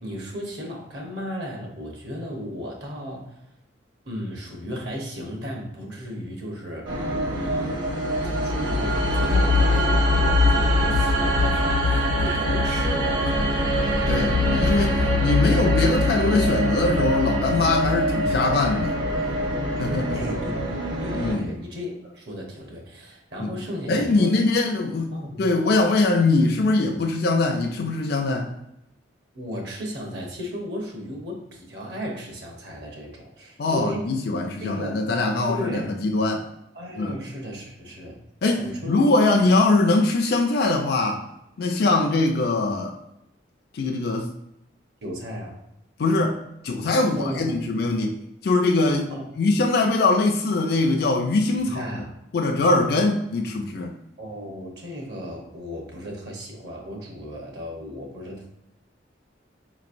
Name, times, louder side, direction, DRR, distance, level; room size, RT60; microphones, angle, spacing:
voice 1, 0.0-3.4 4.0-7.8 8.2-13.7 20.1-20.5 21.0-24.4 25.1-25.5 29.3-34.1 34.6-35.0 35.5-35.9 36.7-38.2 38.6-39.1 45.0-45.6 47.1-47.6 49.1-49.2 51.6-52.1 54.2-58.5, equal, 60° right, -1 dB, 0.9 m, -35 dB
sound 1, 6.8-21.3, left 1 dB, 80° right, 1.3 m, -23 dB
voice 2, 13.9-19.0 19.8-20.2 21.1-21.5 23.4-23.5 23.9-28.5 33.6-36.5 36.9-37.2 38.4-41.2 41.6-42.9 43.7-44.3 46.0-46.4 46.6-48.2 48.4-51.8 52.3-53.9, left 2 dB, 55° left, 2 dB, 0.4 m, -22 dB
5.0 x 3.0 x 2.5 m, 0.83 s
head